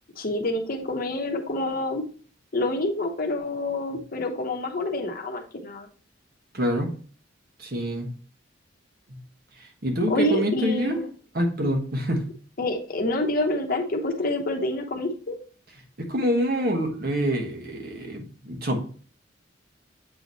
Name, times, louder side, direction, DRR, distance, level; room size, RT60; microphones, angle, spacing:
voice 1, 0.2-2.0 2.5-5.9 10.1-11.0 12.6-15.4, left 1 dB, 50° left, 3 dB, 0.9 m, -27 dB
voice 2, 6.5-6.9 7.6-8.1 9.8-11.0 11.3-12.2 16.0-18.8, equal, 55° right, 3 dB, 1.3 m, -26 dB
7.9 x 3.0 x 4.0 m, 0.41 s
head